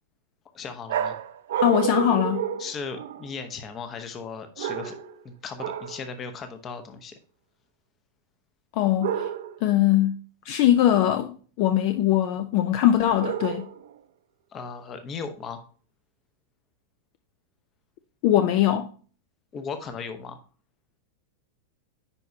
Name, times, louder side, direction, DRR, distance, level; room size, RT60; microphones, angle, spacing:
voice 1, 0.5-1.2 2.6-4.9 5.2-7.2 14.5-15.6 19.5-20.4, left 5 dB, 20° left, 0.8 m, -37 dB
sound 1, 0.9-3.4 4.6-5.2 5.6-6.1 9.0-9.7 13.2-13.9, right 9 dB, 70° right, 0.8 m, -30 dB
voice 2, 1.6-2.5 8.8-9.3 9.6-10.2 10.5-13.7 18.2-18.9, left 12 dB, 40° left, 0.5 m, -21 dB
9.8 x 4.6 x 2.7 m
supercardioid pair, 175°, 0 cm